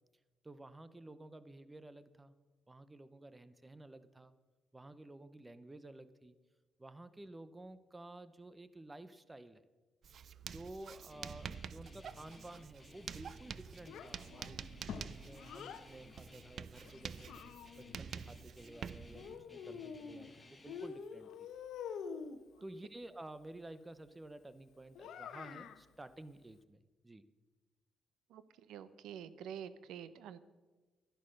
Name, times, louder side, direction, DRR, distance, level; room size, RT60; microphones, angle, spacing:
voice 1, 0.4-2.3 2.7-4.3 4.7-6.4 6.8-9.6 10.4-14.7 14.9-17.4 17.7-21.5 21.8-22.2 22.6-26.8 27.0-27.2, right 2 dB, 15° right, 14 dB, 0.8 m, -52 dB
Writing, 10.0-19.3, right 7 dB, 55° right, 0.4 m, -48 dB
Guitar, 11.1-20.9, left 2 dB, 15° left, 2.2 m, -59 dB
Child speech kid speaking, 13.9-15.9 16.8-18.0 19.1-20.3 20.7-22.4 24.9-25.8, left 6 dB, 75° left, 0.9 m, -47 dB
voice 2, 28.7-30.4, right 9 dB, 85° right, 14 dB, 0.7 m, -47 dB
13.0 x 11.0 x 6.6 m, 1.3 s
cardioid pair, 90°, 0 cm